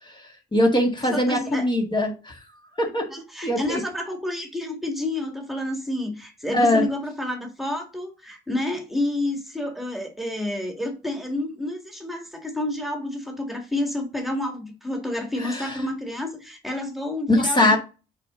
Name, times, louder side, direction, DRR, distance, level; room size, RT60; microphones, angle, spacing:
voice 1, 0.0-2.4 2.8-3.1 3.4-3.8 6.5-6.9 15.4-15.8 17.3-17.8, left 1 dB, 25° left, 1.9 m, -22 dB
voice 2, 1.1-1.7 3.1-17.8, left 1 dB, ahead, 2.1 m, -29 dB
6.6 x 5.2 x 3.8 m
cardioid pair, 90°, 20 cm